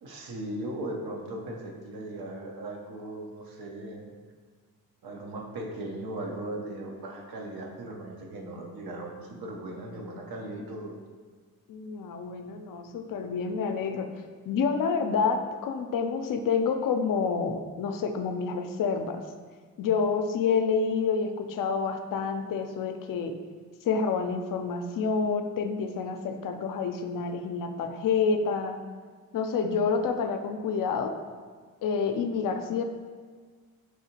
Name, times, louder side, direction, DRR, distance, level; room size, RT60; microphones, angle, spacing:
voice 1, 0.0-4.1 5.0-11.0, right 1 dB, 75° right, 0 dB, 0.8 m, -38 dB
voice 2, 11.7-14.1 14.4-19.2 19.8-23.3 23.8-28.8 29.3-31.1 31.8-32.8, left 5 dB, 60° left, 6 dB, 0.5 m, -28 dB
4.8 x 2.8 x 2.8 m, 1.5 s
supercardioid pair, 45°, 36 cm